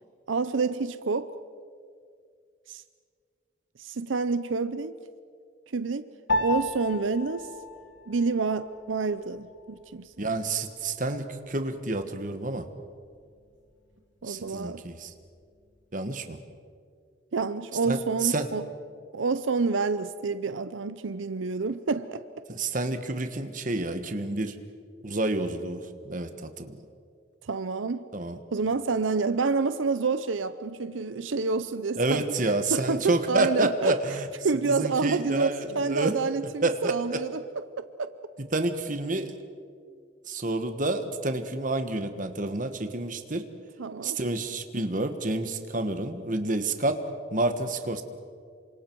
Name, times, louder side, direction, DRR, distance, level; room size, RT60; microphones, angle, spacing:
voice 1, 0.3-1.3 2.7-2.8 3.8-4.9 5.7-6.1 6.4-7.5 8.1-10.1 14.2-14.8 17.3-18.7 19.1-22.3 27.4-28.1 28.5-34.2 34.4-35.5 35.7-38.1 43.8-44.2, right 4 dB, 85° right, 0.6 m, -28 dB
Piano, 6.3-15.9, left 1 dB, 75° left, 2.1 m, -37 dB
voice 2, 10.2-12.7 14.3-15.1 15.9-16.4 17.8-18.5 22.5-24.6 25.0-26.7 28.1-28.4 32.0-34.2 34.7-36.1 36.6-37.2 38.5-39.3 40.3-43.4 44.0-47.0 47.3-48.0, right 2 dB, 45° right, 1.4 m, -29 dB
28.0 x 25.5 x 4.7 m
head